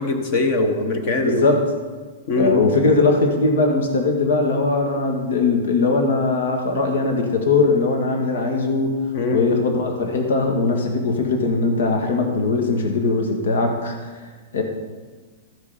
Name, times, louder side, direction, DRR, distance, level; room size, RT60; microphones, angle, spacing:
voice 1, 0.0-1.4 2.3-2.7 9.1-9.6, left 2 dB, 35° left, 6 dB, 1.2 m, -22 dB
voice 2, 1.2-1.6 2.3-9.1 9.3-14.1 14.5-14.6, left 3 dB, 70° left, 3 dB, 2.0 m, -20 dB
14.5 x 6.8 x 5.1 m, 1.4 s
supercardioid pair, 175°, 0 cm